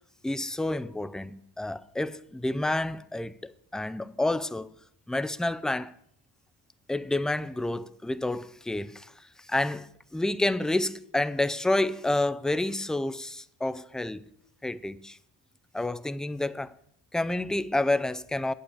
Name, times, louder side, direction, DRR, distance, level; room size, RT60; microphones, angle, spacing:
voice 1, 0.2-4.7 5.1-5.9 6.9-14.2 14.6-15.2 15.7-16.7 17.1-18.5, left 2 dB, ahead, 0.4 m, -29 dB
8.9 x 8.1 x 8.5 m
cardioid pair, 90°, 47 cm